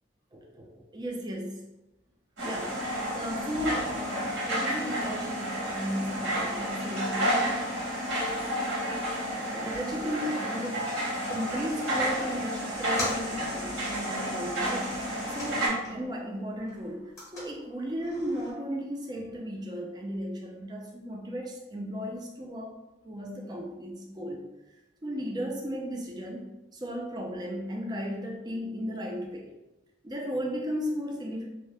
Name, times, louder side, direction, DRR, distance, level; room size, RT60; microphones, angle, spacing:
voice 1, 0.3-1.6 2.4-7.5 9.5-14.9 15.3-22.7 23.0-24.5 25.0-26.5 26.8-29.5 30.0-31.5, equal, 20° right, 0 dB, 0.4 m, -35 dB
sound 1, 2.4-15.7, equal, 75° right, 1.3 m, -31 dB
sound 2, 12.7-16.2 16.5-18.5, left 1 dB, 15° left, 0.8 m, -42 dB
2.6 x 2.1 x 3.3 m, 0.98 s
head